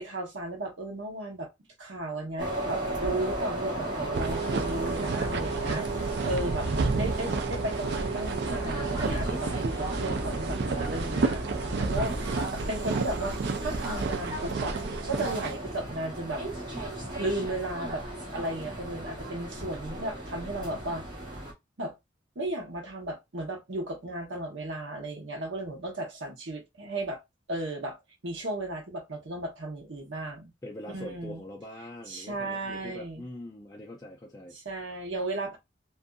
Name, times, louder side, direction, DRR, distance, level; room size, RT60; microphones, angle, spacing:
voice 1, 0.0-1.5 1.8-5.9 6.2-6.7 7.0-14.8 15.1-16.4 17.1-18.0 18.3-21.0 21.8-21.9 22.4-27.2 27.5-27.9 28.2-30.5 30.9-31.4 32.1-33.2 34.6-35.6, right 1 dB, 85° right, 1.0 m, -35 dB
sound 1, 2.4-21.5, right 1 dB, 25° right, 1.0 m, -35 dB
sound 2, 4.1-15.5, right 4 dB, 65° right, 0.4 m, -31 dB
voice 2, 30.6-34.6, left 1 dB, 20° left, 0.4 m, -44 dB
2.6 x 2.4 x 2.3 m
head